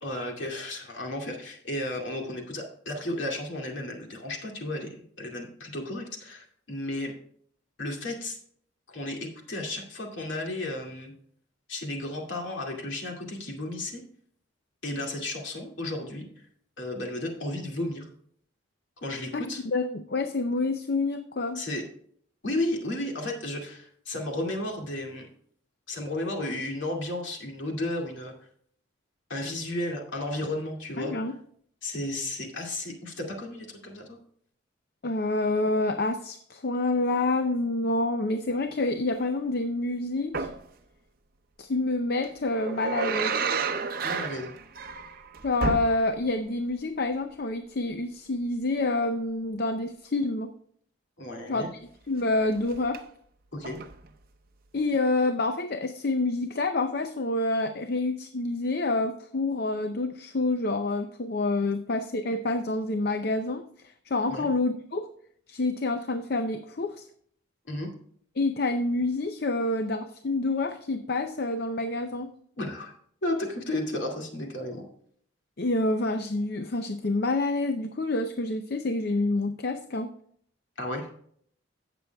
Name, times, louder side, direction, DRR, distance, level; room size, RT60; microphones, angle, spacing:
voice 1, 0.0-7.1 7.8-8.4 8.9-11.1 11.7-14.0 14.8-16.3 16.8-18.1 19.0-19.6 21.6-21.8 22.4-25.3 25.9-28.3 29.3-31.1 31.8-34.2 44.0-44.5 51.2-51.7 53.5-53.8 64.3-64.5 67.7-67.9 72.6-72.9 73.2-74.9 80.8-81.1, left 1 dB, 65° left, 0 dB, 2.3 m, -33 dB
voice 2, 19.7-21.6 31.0-31.3 35.0-40.5 41.6-43.4 45.4-50.5 51.5-51.6 52.1-53.0 54.7-63.7 64.1-65.1 65.5-67.1 68.4-72.3 75.6-80.1, left 2 dB, 50° left, 8 dB, 0.6 m, -27 dB
sound 1, 40.3-40.7 42.2-46.4 46.7-46.8 52.6-53.0 53.6-54.1 54.9-55.0, right 4 dB, 45° right, 0.7 m, -31 dB
16.5 x 6.8 x 2.3 m, 0.62 s
head